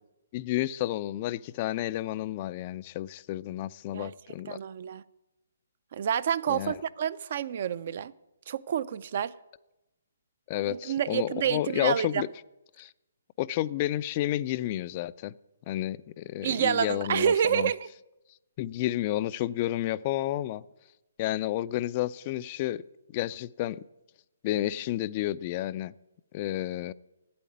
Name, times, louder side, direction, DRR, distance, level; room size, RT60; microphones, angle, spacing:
voice 1, 0.3-4.6 6.5-6.8 10.5-12.3 12.8-12.9 13.4-15.3 15.7-17.7 18.6-20.6 21.2-22.8 23.1-23.8 24.4-25.9 26.3-26.9, left 14 dB, 35° left, 0.3 m, -31 dB
voice 2, 4.5-5.0 5.9-8.1 8.5-9.3 10.7-12.2 16.4-17.9, right 8 dB, 50° right, 0.4 m, -28 dB
8.6 x 8.4 x 9.3 m
figure-of-eight pair, 140°, 0 cm